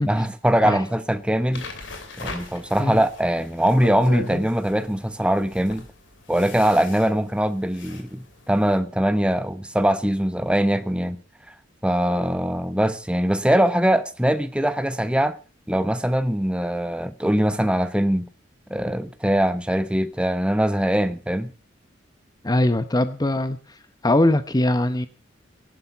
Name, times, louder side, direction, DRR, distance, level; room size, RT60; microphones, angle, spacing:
voice 1, 0.0-1.7 2.2-5.8 6.3-11.2 11.8-15.4 15.7-18.3 18.7-21.5, right 1 dB, 5° right, 1.0 m, -22 dB
sound 1, 1.5-8.8, left 2 dB, 70° left, 2.8 m, -39 dB
voice 2, 22.4-23.6 24.0-25.1, left 1 dB, 20° left, 0.8 m, -21 dB
17.0 x 11.5 x 5.7 m
head